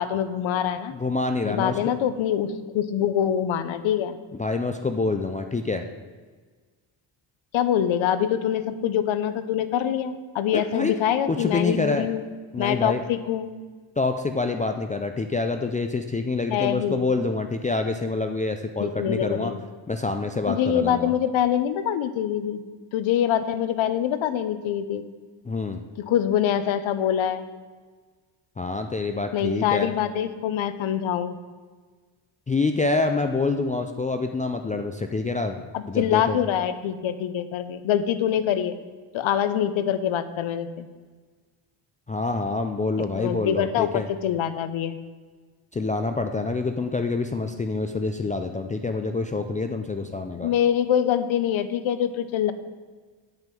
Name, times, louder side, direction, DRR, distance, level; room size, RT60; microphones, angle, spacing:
voice 1, 0.0-0.9 1.4-4.2 7.5-12.2 12.6-13.5 16.5-17.1 18.8-19.6 20.5-22.6 22.9-25.0 26.0-27.4 29.3-31.4 35.7-38.7 39.1-40.9 43.2-45.0 50.4-52.5, left 9 dB, 70° left, 12 dB, 0.8 m, -24 dB
voice 2, 0.9-2.0 4.4-5.8 10.5-10.9 11.3-12.1 12.5-13.0 14.0-19.5 19.9-21.1 25.5-25.8 28.6-29.9 32.5-36.4 42.1-44.1 45.7-50.5, left 3 dB, 15° left, 6 dB, 0.3 m, -26 dB
9.0 x 5.5 x 7.5 m, 1.4 s
cardioid pair, 140°, 49 cm